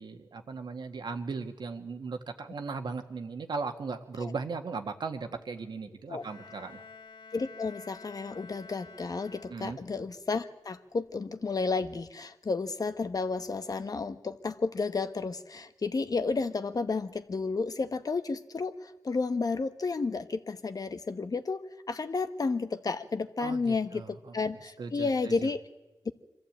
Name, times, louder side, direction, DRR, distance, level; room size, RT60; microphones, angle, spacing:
voice 1, 0.0-6.8 9.5-9.8 23.4-24.3 24.8-25.5, right 4 dB, 70° right, 6 dB, 1.7 m, -37 dB
Bowed string instrument, 6.2-10.0, left 4 dB, 70° left, 1.7 m, -50 dB
voice 2, 7.3-21.6 21.9-25.6, left 4 dB, 50° left, 10 dB, 1.2 m, -32 dB
24.0 x 14.0 x 8.8 m, 1.1 s
cardioid pair, 60°, 8 cm